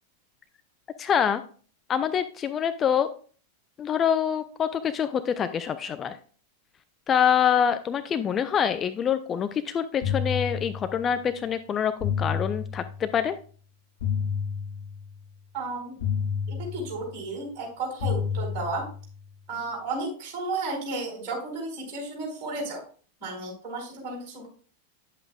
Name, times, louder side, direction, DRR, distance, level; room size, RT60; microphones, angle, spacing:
voice 1, 1.0-1.4 1.9-3.1 3.8-6.2 7.1-13.4, left 8 dB, 25° left, 10 dB, 0.5 m, -25 dB
sound 1, 10.0-11.2 12.0-13.2 14.0-15.2 16.0-17.2 18.0-19.2, left 7 dB, 55° left, 4.5 m, -30 dB
voice 2, 15.5-15.9 16.5-18.8 19.5-22.8 23.2-24.5, right 3 dB, 40° right, -2 dB, 4.6 m, -33 dB
9.5 x 7.9 x 2.4 m, 0.41 s
figure-of-eight pair, 90°, 0 cm